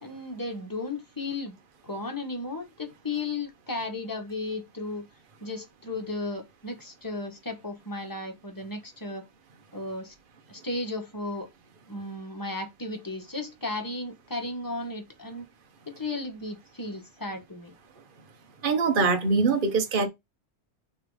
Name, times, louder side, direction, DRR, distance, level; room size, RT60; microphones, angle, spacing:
voice 1, 0.0-1.6 1.8-5.1 5.4-9.2 9.7-10.1 10.5-11.5 11.9-15.5 15.9-17.7, left 2 dB, 20° left, 1.6 m, -35 dB
voice 2, 18.6-20.1, right 4 dB, 50° right, 1.2 m, -23 dB
5.7 x 3.3 x 5.0 m
omnidirectional pair, 1.1 m